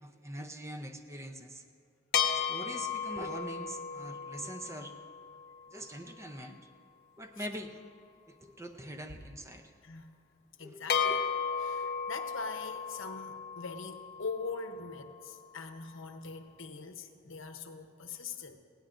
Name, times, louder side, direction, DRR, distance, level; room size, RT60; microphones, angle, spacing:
voice 1, 0.0-1.6 2.3-4.9 5.7-6.7 7.2-7.8 8.3-9.7 10.6-11.3, right 1 dB, 15° right, 6 dB, 0.6 m, -43 dB
sound 1, 2.1-5.8 10.9-15.3, left 7 dB, 50° left, 0.9 m, -35 dB
voice 2, 10.6-11.1 11.6-18.6, left 4 dB, 80° left, 6 dB, 0.9 m, -42 dB
19.5 x 16.5 x 2.6 m, 2.3 s
head